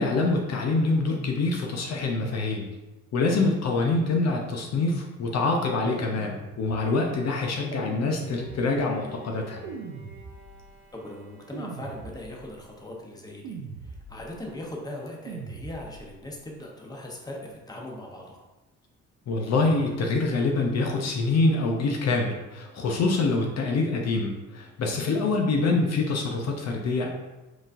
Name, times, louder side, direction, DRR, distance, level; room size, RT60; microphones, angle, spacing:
voice 1, 0.0-2.7 3.1-9.6 19.3-27.1, left 3 dB, 60° left, 1 dB, 0.7 m, -25 dB
sound 1, 5.8-7.0 7.7-8.9 9.6-10.8 11.5-12.6 13.4-14.4 15.3-16.2, right 4 dB, 85° right, 0.7 m, -40 dB
Bowed string instrument, 8.0-13.0, equal, 35° right, 1.2 m, -50 dB
voice 2, 10.9-13.6 13.8-18.4, left 1 dB, 15° left, -1 dB, 1.0 m, -39 dB
4.9 x 3.9 x 2.6 m, 1.1 s
cardioid pair, 90°, 30 cm